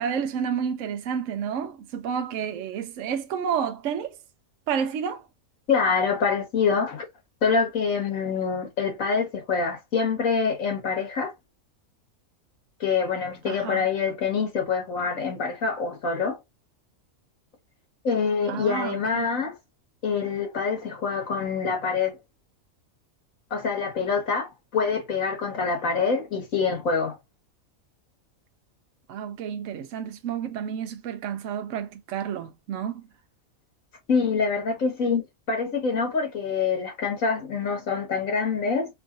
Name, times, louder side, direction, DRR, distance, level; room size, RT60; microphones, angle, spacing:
voice 1, 0.0-4.2 4.7-5.3 13.5-13.9 18.5-19.3 29.1-33.1, right 7 dB, 70° right, 0.9 m, -30 dB
voice 2, 5.7-7.1 7.4-11.3 12.8-16.4 18.0-19.5 20.0-22.2 23.5-27.2 34.1-35.2 35.5-38.9, left 5 dB, 75° left, 2.1 m, -25 dB
4.5 x 2.5 x 2.6 m
omnidirectional pair, 1.4 m